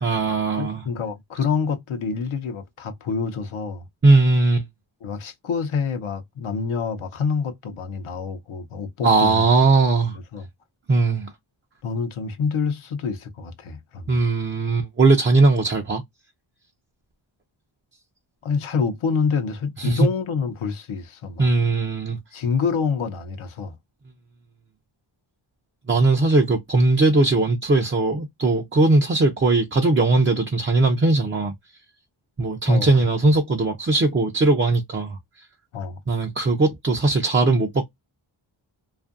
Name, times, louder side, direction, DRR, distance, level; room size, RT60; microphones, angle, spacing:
voice 1, 0.0-0.8 4.0-4.6 9.0-10.2 10.9-11.3 14.1-16.0 19.8-20.1 21.4-22.2 25.9-31.5 32.4-35.5 36.1-37.8, right 3 dB, 25° right, 0.4 m, -19 dB
voice 2, 0.6-3.9 5.0-9.4 10.3-10.5 11.8-14.2 18.4-21.5 22.3-23.7 32.7-32.9 35.7-36.0, left 5 dB, 80° left, 0.7 m, -27 dB
2.6 x 2.4 x 2.4 m
wide cardioid pair, 115°, 48 cm